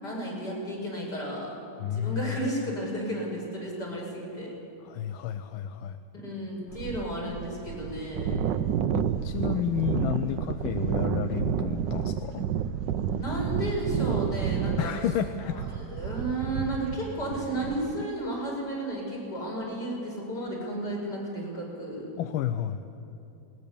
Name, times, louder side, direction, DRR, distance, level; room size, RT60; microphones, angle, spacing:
voice 1, 0.0-1.5 1.8-4.5 6.1-8.7 10.6-10.7 13.2-15.0 15.4-22.1, right 1 dB, 55° left, -3 dB, 6.2 m, -33 dB
voice 2, 1.8-2.4 4.8-6.0 8.3-8.5 8.9-12.4 14.8-15.6 22.2-22.8, left 10 dB, 85° left, 9 dB, 1.4 m, -31 dB
sound 1, 6.7-18.1, right 8 dB, 70° right, 1.2 m, -30 dB
21.0 x 19.5 x 7.0 m, 2.7 s
omnidirectional pair, 2.2 m